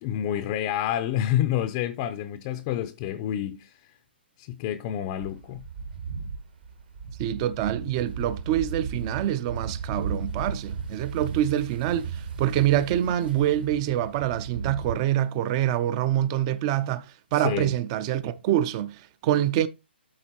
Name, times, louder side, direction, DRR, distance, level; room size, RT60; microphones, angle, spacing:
voice 1, 0.0-3.7 4.4-5.6 17.4-17.7, left 11 dB, 30° left, 0.6 m, -28 dB
sound 1, 5.2-15.0, right 5 dB, 55° right, 2.2 m, -35 dB
voice 2, 7.2-19.7, right 12 dB, 30° right, 0.7 m, -26 dB
12.5 x 4.4 x 2.9 m
hypercardioid pair, 145°, 6 cm